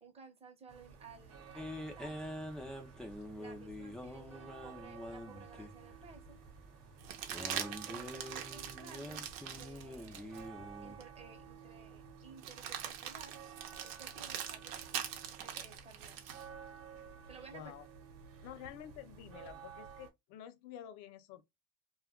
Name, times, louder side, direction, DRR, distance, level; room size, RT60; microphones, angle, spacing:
voice 1, 0.0-2.4 3.4-6.4 7.4-9.2 9.5-10.4 10.8-13.4 13.8-15.0 15.4-16.2 17.3-17.7, right 4 dB, 20° right, 0.7 m, -56 dB
sound 1, 0.7-20.1, right 7 dB, 50° right, 0.9 m, -54 dB
sound 2, 1.6-11.0, left 1 dB, ahead, 0.3 m, -46 dB
sound 3, 5.4-5.5 7.0-10.5 11.0-11.1 12.4-16.5 18.6-19.5, right 9 dB, 80° right, 0.7 m, -43 dB
voice 2, 17.5-17.9 18.4-21.4, left 10 dB, 65° left, 0.6 m, -49 dB
2.2 x 2.1 x 3.5 m
supercardioid pair, 125°, 30 cm